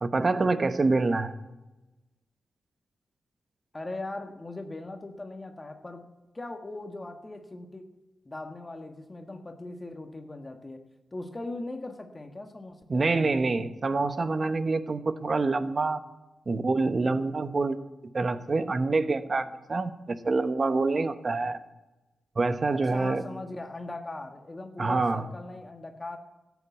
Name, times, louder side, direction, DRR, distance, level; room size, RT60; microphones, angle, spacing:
voice 1, 0.0-1.3 12.9-16.0 16.5-17.8 18.1-21.6 22.4-23.2 24.8-25.2, right 3 dB, 45° right, 11 dB, 1.0 m, -26 dB
voice 2, 3.7-6.1 6.3-7.8 8.2-13.7 22.7-26.2, left 2 dB, 25° left, 5 dB, 1.5 m, -40 dB
13.5 x 8.3 x 8.3 m, 1.1 s
cardioid pair, 65°, 0 cm